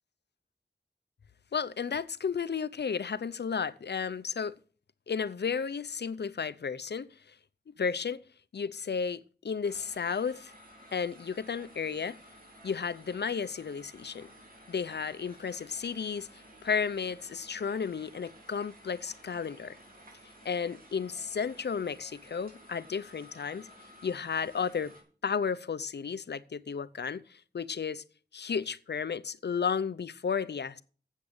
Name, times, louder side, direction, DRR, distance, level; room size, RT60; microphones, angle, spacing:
voice 1, 1.5-4.5 5.1-7.1 7.7-8.2 8.5-10.5 10.9-12.2 12.6-14.3 14.7-16.3 16.6-19.8 20.4-23.7 24.0-24.9 25.2-28.0 28.3-30.8, left 6 dB, 85° left, 0.6 m, -33 dB
sound 1, 9.6-25.0, equal, 60° right, 4.5 m, -54 dB
8.1 x 7.3 x 8.6 m
wide cardioid pair, 45°, 17 cm